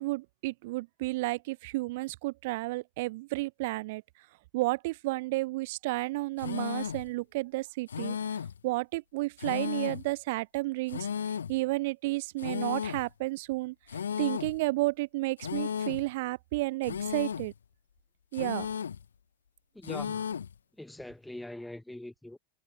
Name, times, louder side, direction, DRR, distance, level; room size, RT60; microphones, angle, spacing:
voice 1, 0.0-4.0 4.5-8.2 8.6-11.1 11.5-13.7 14.2-17.5 18.3-18.7, right 21 dB, 50° right, 0.6 m, -32 dB
sound 1, 6.4-7.1 7.9-8.6 9.4-10.1 10.9-11.6 12.4-13.1 13.9-14.6 15.4-16.1 16.8-17.5 18.3-19.0 19.8-20.5, left 7 dB, 70° left, 0.5 m, -34 dB
voice 2, 19.7-20.3 20.8-22.4, left 1 dB, 5° left, 1.5 m, -42 dB
figure-of-eight pair, 90°, 0 cm